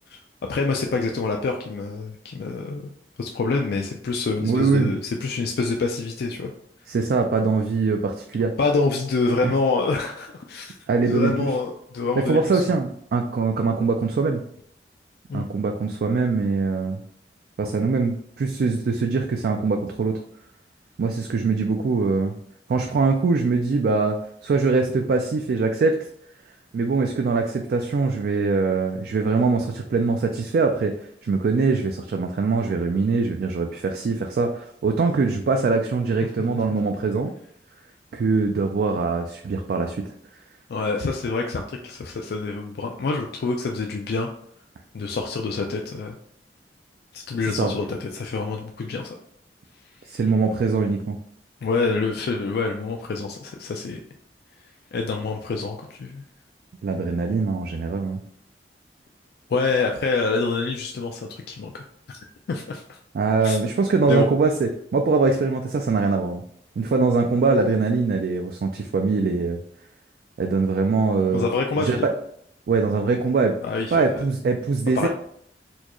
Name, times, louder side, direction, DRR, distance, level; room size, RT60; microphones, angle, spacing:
voice 1, 0.5-2.9 3.2-6.5 8.6-10.8 11.0-12.6 15.3-15.5 40.7-44.3 44.9-46.2 47.1-49.1 51.6-54.0 54.9-56.2 59.5-62.2 62.5-63.0 63.4-63.6 64.1-64.3 71.3-72.1 73.6-74.1 74.9-75.1, left 3 dB, 60° left, 2 dB, 0.3 m, -26 dB
voice 2, 4.4-4.9 6.9-8.5 9.4-9.5 10.9-11.5 12.2-14.4 15.3-17.0 17.6-20.2 21.0-22.4 22.7-24.2 24.4-25.9 26.7-30.9 31.2-37.3 38.1-40.1 47.5-47.7 50.0-51.2 56.8-58.2 63.1-66.4 66.8-69.6 70.4-71.4 71.8-72.1 72.7-73.6 73.9-75.1, right 4 dB, 60° right, 4 dB, 0.3 m, -22 dB
4.3 x 2.3 x 2.9 m, 0.67 s
head